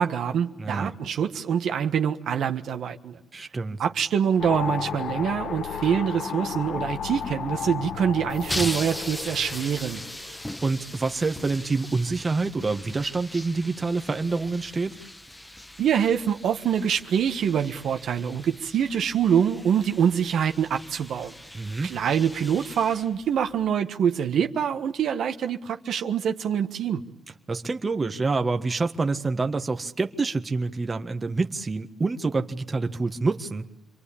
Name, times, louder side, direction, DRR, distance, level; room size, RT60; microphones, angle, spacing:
voice 1, 0.0-3.2 3.8-10.0 15.8-21.3 21.8-27.0, right 8 dB, 70° right, 1.5 m, -25 dB
voice 2, 0.6-0.9 3.3-3.8 10.6-14.9 21.5-21.9 27.5-33.6, right 3 dB, 25° right, 1.6 m, -27 dB
sound 1, 4.4-10.8, left 7 dB, 70° left, 1.5 m, -34 dB
sound 2, 8.3-23.7, left 1 dB, 10° left, 1.1 m, -39 dB
28.5 x 23.0 x 8.7 m
cardioid pair, 90°, 0 cm